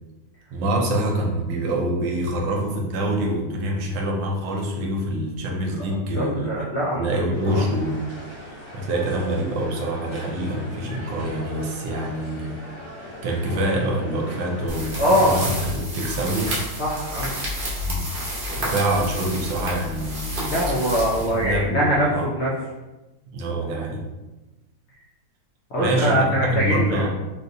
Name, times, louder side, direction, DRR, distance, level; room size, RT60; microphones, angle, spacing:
voice 1, 0.5-6.5 6.9-8.1 8.7-12.6 13.2-16.5 17.8-18.1 18.6-20.5 21.1-22.3 23.3-24.0 25.8-27.1, right 1 dB, 80° right, 0 dB, 1.4 m, -25 dB
voice 2, 6.1-7.7 15.0-15.4 16.8-17.4 20.4-22.5 23.5-23.8 25.7-27.1, equal, 75° left, -6 dB, 0.6 m, -23 dB
sound 1, 7.3-15.7, left 1 dB, 50° left, 1.2 m, -39 dB
sound 2, 14.7-21.8, equal, 40° right, 0.8 m, -30 dB
3.7 x 2.7 x 2.6 m, 1.1 s
omnidirectional pair, 2.0 m